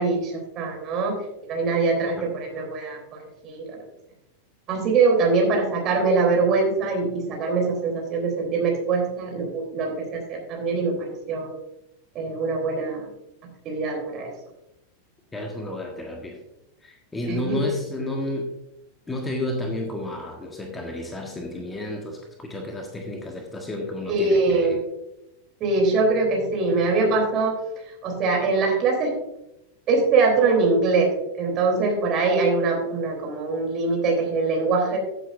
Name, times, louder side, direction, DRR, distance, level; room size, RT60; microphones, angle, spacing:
voice 1, 0.0-3.0 3.4-3.8 4.7-11.5 12.1-13.1 13.6-14.3 17.3-17.6 24.0-24.8 25.6-27.6 28.0-29.2 29.9-35.0, right 3 dB, 35° right, 1 dB, 3.4 m, -23 dB
voice 2, 15.3-16.4 16.8-18.5 19.1-24.8, left 1 dB, 15° left, 2 dB, 1.5 m, -31 dB
15.0 x 7.9 x 2.6 m, 0.90 s
figure-of-eight pair, 90°, 0 cm